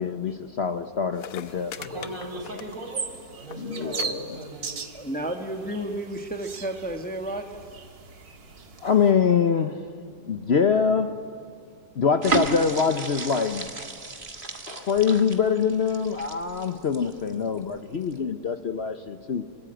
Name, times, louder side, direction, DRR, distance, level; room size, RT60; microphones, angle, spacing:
voice 1, 0.0-2.1 3.6-4.4 8.8-9.8 10.3-11.2 12.0-13.6 14.7-19.4, left 6 dB, 50° left, 9 dB, 1.0 m, -24 dB
sound 1, 0.8-0.9 1.1-3.1 3.3-3.6 3.9-4.1 4.3-4.8 5.7-5.8, left 9 dB, 65° left, 1.3 m, -40 dB
sound 2, 1.5-9.1, right 5 dB, 80° right, 2.1 m, -39 dB
voice 2, 1.8-4.7, right 1 dB, 65° right, 0 dB, 6.3 m, -38 dB
voice 3, 4.9-7.7 14.1-14.2, right 1 dB, 5° left, 4 dB, 1.5 m, -32 dB
sound 3, 12.2-17.6 18.0-18.2, right 4 dB, 35° right, 1.9 m, -33 dB
27.0 x 22.5 x 9.0 m, 2.4 s
omnidirectional pair, 1.6 m